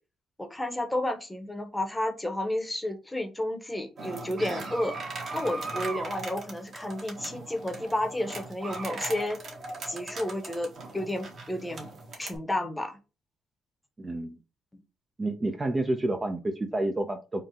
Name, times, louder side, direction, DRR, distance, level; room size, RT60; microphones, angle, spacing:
voice 1, 0.4-5.0 5.3-9.4 9.9-11.9 12.2-13.0 14.7-14.8, left 1 dB, 10° left, 6 dB, 0.9 m, -31 dB
sound 1, 4.0-12.4, right 3 dB, 55° right, 1.6 m, -39 dB
voice 2, 14.0-14.4 15.2-17.4, right 2 dB, 25° right, 5 dB, 0.6 m, -29 dB
3.8 x 2.3 x 4.1 m, 0.30 s
cardioid pair, 90°, 0 cm